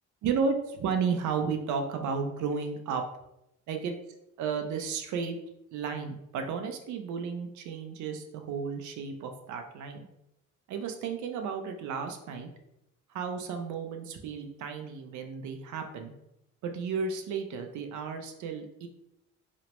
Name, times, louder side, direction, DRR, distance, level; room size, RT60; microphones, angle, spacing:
voice 1, 0.2-3.0 3.7-4.0 4.4-5.4 5.7-10.1 10.7-12.5 13.1-16.1 16.6-18.9, right 5 dB, 75° right, 5 dB, 0.5 m, -33 dB
3.0 x 2.0 x 2.9 m, 0.85 s
cardioid pair, 90°, 30 cm